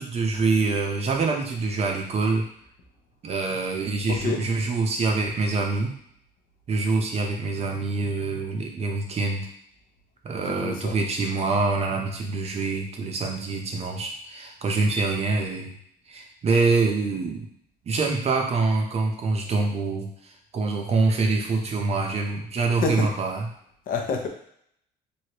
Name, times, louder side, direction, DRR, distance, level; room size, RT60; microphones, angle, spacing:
voice 1, 0.0-2.4 3.2-5.9 6.7-9.5 10.2-15.7 16.1-17.5 17.9-20.1 20.5-23.5, right 3 dB, 40° right, 2 dB, 0.7 m, -25 dB
voice 2, 4.1-4.4 10.5-10.9 22.8-23.1 23.9-24.3, left 4 dB, 55° left, 3 dB, 0.6 m, -27 dB
3.2 x 2.6 x 2.9 m, 0.69 s
cardioid pair, 110°, 17 cm